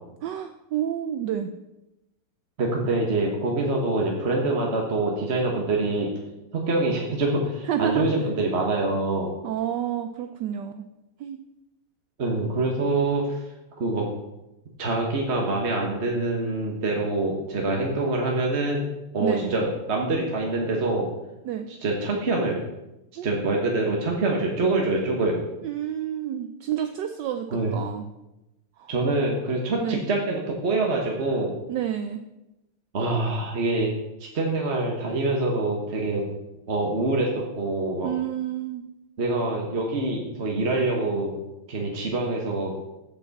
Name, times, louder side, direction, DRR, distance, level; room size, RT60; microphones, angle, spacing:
voice 1, 0.2-1.5 7.6-8.1 9.4-10.9 11.2-11.4 19.2-19.6 21.4-21.7 23.2-23.3 25.6-28.1 28.8-28.9 29.8-30.0 31.7-32.2 38.0-38.8, right 10 dB, 80° right, 8 dB, 1.0 m, -29 dB
voice 2, 2.6-6.1 6.5-9.3 12.2-13.4 13.8-14.0 14.8-18.9 19.1-21.1 21.8-22.6 23.2-25.4 27.5-27.7 28.9-31.5 32.9-33.9 34.2-36.2 36.7-38.1 39.2-41.4 41.7-42.7, right 2 dB, 40° right, 0 dB, 1.1 m, -25 dB
14.5 x 5.8 x 4.1 m, 0.95 s
omnidirectional pair, 2.4 m